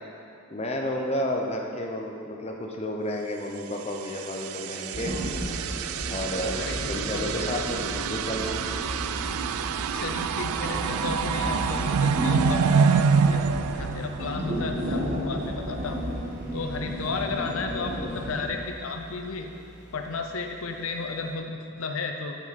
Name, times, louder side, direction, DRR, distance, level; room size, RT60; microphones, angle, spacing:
voice 1, 0.5-5.1 6.1-6.6 6.9-8.6, left 1 dB, 30° left, 1 dB, 0.7 m, -31 dB
sound 1, 3.9-14.6, right 6 dB, 85° right, 0.3 m, -27 dB
sound 2, 4.9-18.5, equal, 40° right, 1.3 m, -33 dB
voice 2, 6.5-7.8 9.9-13.4 13.7-16.0 16.5-19.5 19.9-22.4, left 4 dB, 70° left, 4 dB, 0.6 m, -33 dB
sound 3, 11.4-21.3, right 1 dB, 55° right, 1.6 m, -48 dB
9.0 x 7.4 x 4.2 m, 2.6 s
head